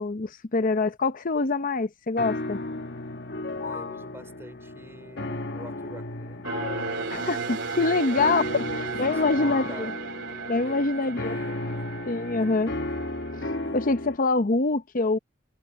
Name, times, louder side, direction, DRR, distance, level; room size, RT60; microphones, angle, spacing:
voice 1, 0.0-2.6 7.1-9.9 10.5-11.4 12.1-12.7 13.3-13.4 13.7-15.2, left 3 dB, 45° left, 0.8 m, -25 dB
sound 1, 2.2-14.2, left 2 dB, 60° left, 1.3 m, -34 dB
voice 2, 3.6-6.5 7.8-8.8 9.1-10.0 10.5-11.9 13.6-13.8, right 1 dB, 15° right, 3.5 m, -46 dB
sound 2, 6.4-13.7, right 5 dB, 65° right, 3.4 m, -35 dB
head